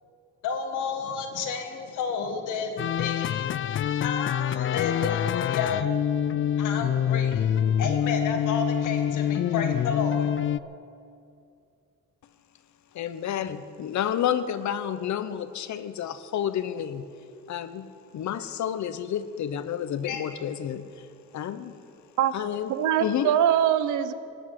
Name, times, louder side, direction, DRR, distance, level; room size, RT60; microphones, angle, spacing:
voice 1, 0.4-3.5 4.0-5.9 6.6-7.5 7.8-10.3 20.0-20.2, left 5 dB, 85° left, 4 dB, 2.1 m, -31 dB
sound 1, 2.8-10.6, left 9 dB, 40° left, 0.4 m, -26 dB
voice 2, 12.9-17.1 17.5-17.9 18.1-21.1 21.3-21.7 22.3-23.3, left 10 dB, 70° left, 12 dB, 1.0 m, -30 dB
voice 3, 22.7-24.1, right 10 dB, 80° right, 13 dB, 0.9 m, -23 dB
18.5 x 7.2 x 9.7 m, 2.5 s
cardioid pair, 90°, 30 cm